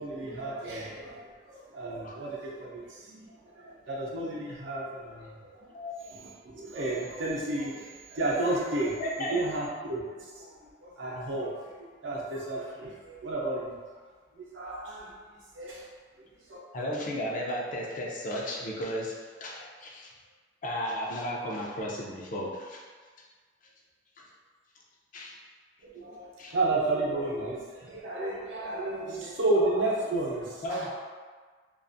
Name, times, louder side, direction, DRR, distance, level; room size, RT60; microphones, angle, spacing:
voice 1, 0.0-3.2 3.5-5.7 6.1-11.7 12.0-13.7 14.3-15.1 15.5-15.9 16.5-16.6 25.8-30.9, right 2 dB, 85° right, -4 dB, 0.6 m, -32 dB
voice 2, 9.0-9.4 16.7-20.1 20.6-22.8 25.1-25.3 26.4-26.5 30.6-30.9, equal, 45° left, -3 dB, 0.4 m, -34 dB
2.4 x 2.3 x 2.5 m, 1.5 s
head